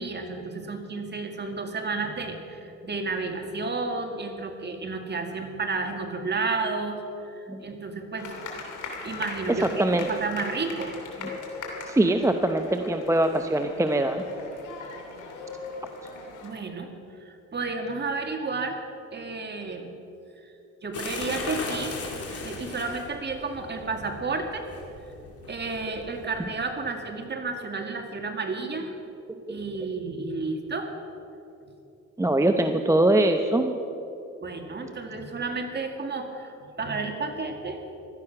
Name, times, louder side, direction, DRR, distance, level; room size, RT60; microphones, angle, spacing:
voice 1, 0.0-8.3 9.0-9.7 10.1-11.0 11.3-11.4 16.4-16.9 17.2-18.8 19.1-19.9 20.8-24.6 25.2-28.9 29.5-30.9 34.4-37.8, right 3 dB, 35° right, 4 dB, 2.2 m, -32 dB
sound 1, 8.2-16.5, left 4 dB, 85° left, 3.1 m, -40 dB
voice 2, 9.5-10.1 11.9-14.2 29.5-29.6 32.2-33.7, right 1 dB, 10° right, 6 dB, 0.8 m, -22 dB
sound 2, 20.9-26.5, left 3 dB, 50° left, 3.4 m, -38 dB
16.5 x 12.5 x 5.9 m, 2.9 s
cardioid pair, 90°, 30 cm